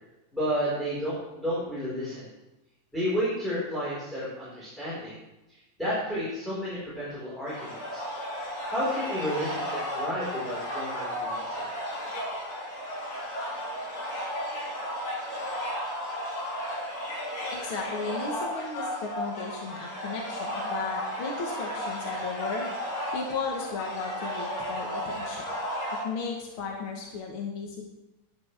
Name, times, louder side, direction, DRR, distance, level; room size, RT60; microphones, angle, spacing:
voice 1, 0.3-2.3 2.9-5.1 5.5-8.0 8.7-11.7, equal, ahead, -10 dB, 4.1 m, -31 dB
sound 1, 7.5-26.0, equal, 80° left, 6.1 m, -34 dB
voice 2, 17.6-22.6 23.1-25.4 26.0-27.9, left 4 dB, 60° left, 0 dB, 1.4 m, -35 dB
12.0 x 11.0 x 3.4 m, 0.96 s
omnidirectional pair, 3.9 m